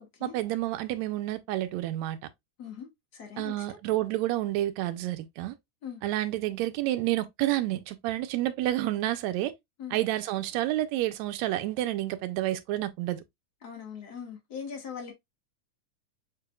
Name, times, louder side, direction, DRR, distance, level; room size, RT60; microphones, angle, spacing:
voice 1, 0.2-2.2 3.4-5.6 6.0-9.5 9.9-13.2, right 15 dB, 75° right, 1.8 m, -29 dB
voice 2, 2.6-3.8 5.8-6.0 9.8-10.0 13.6-15.1, left 7 dB, 50° left, 1.2 m, -41 dB
6.5 x 3.4 x 2.2 m
omnidirectional pair, 3.5 m